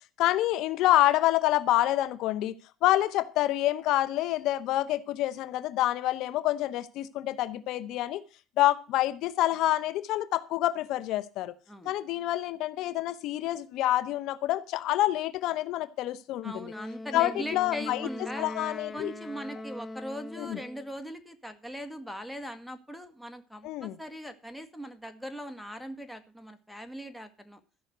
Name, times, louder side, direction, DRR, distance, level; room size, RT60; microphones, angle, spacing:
voice 1, 0.2-8.2 8.6-11.5 11.8-16.7 17.1-18.1 18.4-19.1 20.4-20.6 23.6-23.9, left 15 dB, 70° left, 0.9 m, -27 dB
voice 2, 16.4-18.5 18.9-27.6, equal, 5° left, 1.9 m, -40 dB
Wind instrument woodwind instrument, 16.7-20.9, left 1 dB, 25° left, 1.3 m, -41 dB
14.5 x 5.8 x 8.0 m
supercardioid pair, 95°, 0 cm